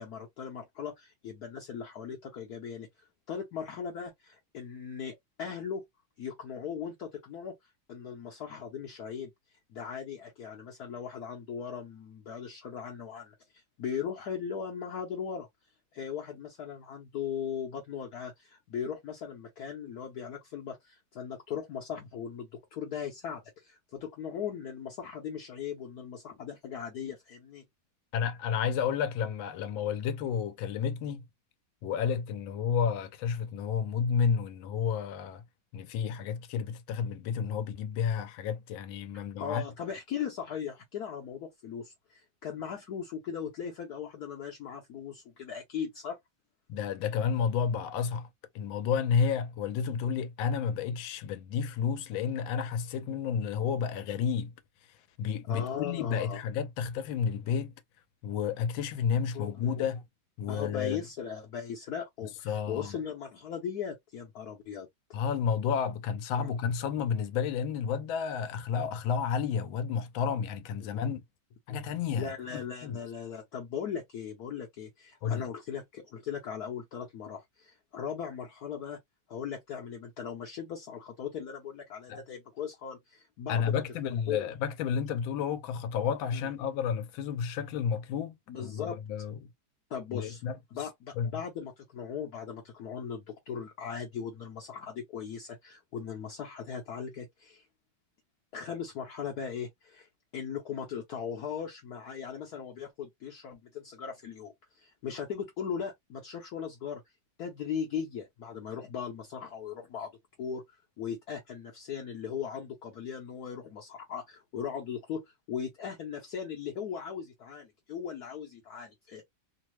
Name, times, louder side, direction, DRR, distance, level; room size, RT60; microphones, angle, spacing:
voice 1, 0.0-5.8 6.2-7.5 7.9-9.3 9.7-15.5 15.9-27.6 39.4-46.2 55.5-56.4 59.3-59.9 60.5-64.9 66.4-66.5 70.8-71.1 71.7-71.8 72.1-79.0 79.3-83.8 84.3-84.5 86.3-86.4 88.5-89.0 89.9-90.4 90.7-97.7 98.5-107.0 107.4-110.1 110.4-119.2, left 7 dB, 65° left, 1.0 m, -38 dB
voice 2, 28.1-31.2 31.8-35.4 35.7-39.6 46.7-48.3 48.5-54.5 55.2-57.7 58.2-60.0 60.4-61.0 62.4-63.0 65.1-71.2 71.7-73.0 75.2-75.4 82.1-82.2 83.5-89.3 90.1-90.6 91.2-91.4, left 7 dB, 85° left, 1.4 m, -31 dB
3.3 x 2.0 x 3.0 m
omnidirectional pair, 2.1 m